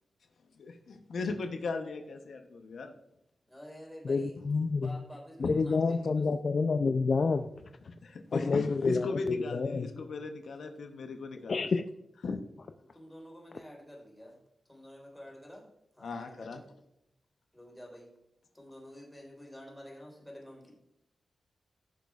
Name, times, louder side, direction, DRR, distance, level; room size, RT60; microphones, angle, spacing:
voice 1, 0.6-2.9 5.4-5.5 8.0-11.7 12.2-12.4 16.0-16.6, left 3 dB, 80° left, 5 dB, 0.8 m, -37 dB
voice 2, 3.5-6.3 12.9-14.4 14.7-15.7 15.9-16.7 17.5-18.1 18.5-20.7, equal, 5° left, -2 dB, 3.7 m, -49 dB
voice 3, 4.1-4.9 5.4-7.5 8.3-9.9 11.5-11.9, left 4 dB, 55° left, 8 dB, 0.4 m, -28 dB
15.5 x 6.2 x 2.4 m, 0.82 s
cardioid pair, 85°, 0 cm